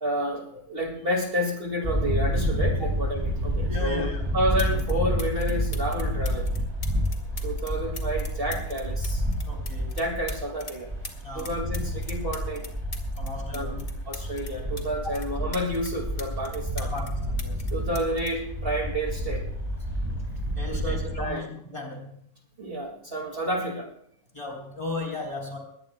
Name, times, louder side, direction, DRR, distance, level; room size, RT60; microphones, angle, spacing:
voice 1, 0.0-6.5 7.4-9.2 10.0-10.9 11.3-12.7 13.5-16.9 17.7-19.5 20.7-21.5 22.6-23.9, equal, 40° right, 1 dB, 2.3 m, -30 dB
sound 1, 1.8-21.2, equal, 15° right, 7.0 m, -29 dB
voice 2, 3.7-4.2 4.7-4.8 9.5-10.0 11.2-11.5 13.2-13.8 16.8-17.7 20.5-22.1 24.3-25.6, left 2 dB, 20° left, 2 dB, 3.9 m, -36 dB
sound 2, 4.6-4.9 5.2-10.8 11.0-14.9 15.1-17.1 17.4-19.2 20.2-20.4, left 3 dB, 55° left, 2.4 m, -42 dB
21.5 x 18.5 x 2.2 m, 0.70 s
omnidirectional pair, 1.6 m